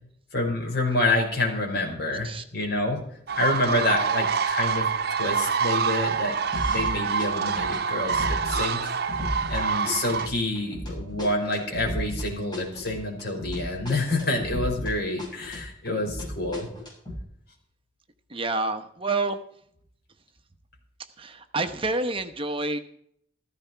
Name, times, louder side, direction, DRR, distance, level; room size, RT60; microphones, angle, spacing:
voice 1, 0.3-3.0 3.4-6.3 6.6-8.9 9.5-16.7, left 2 dB, 60° left, 1 dB, 5.5 m, -27 dB
sound 1, 3.3-10.3, right 6 dB, 60° right, 0.9 m, -26 dB
sound 2, 6.5-6.9 7.2-14.9 15.2-17.2, equal, 25° left, 7.2 m, -34 dB
voice 2, 18.3-19.4 21.2-22.8, right 3 dB, 30° right, 8 dB, 1.0 m, -28 dB
16.0 x 14.5 x 4.6 m, 0.67 s
head